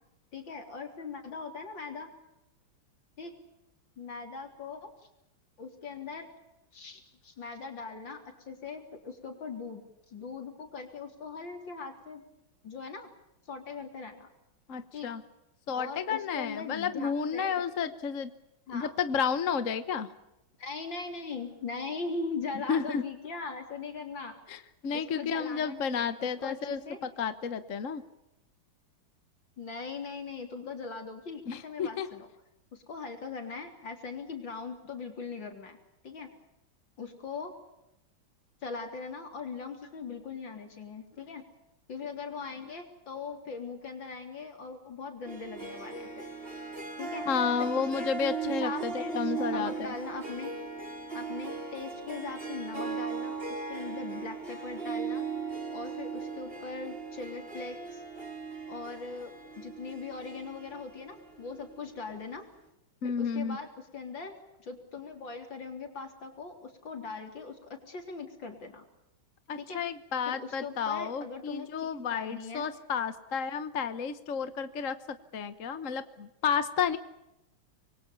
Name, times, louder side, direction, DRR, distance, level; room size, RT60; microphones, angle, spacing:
voice 1, 0.3-2.1 3.2-3.3 4.0-4.9 5.6-6.3 6.7-9.8 10.1-12.2 12.6-13.1 13.5-14.3 14.9-15.1 15.7-17.6 18.7-18.9 20.6-24.4 24.9-27.0 29.6-32.3 32.7-35.8 36.0-36.3 37.0-37.5 38.6-41.4 41.9-46.2 47.0-47.3 47.6-48.1 48.5-50.5 51.1-55.2 55.7-58.0 58.7-62.4 63.0-68.8 69.6-69.8 70.3-72.7, left 4 dB, 75° left, 5 dB, 4.4 m, -40 dB
voice 2, 14.7-15.2 15.7-18.3 18.7-20.1 22.7-23.0 24.5-28.0 31.5-32.1 47.3-49.9 63.0-63.6 69.5-77.0, left 6 dB, 45° left, 11 dB, 1.3 m, -31 dB
Harp, 45.3-62.0, right 5 dB, 30° right, 3.6 m, -38 dB
26.0 x 23.0 x 7.0 m, 0.89 s
omnidirectional pair, 2.1 m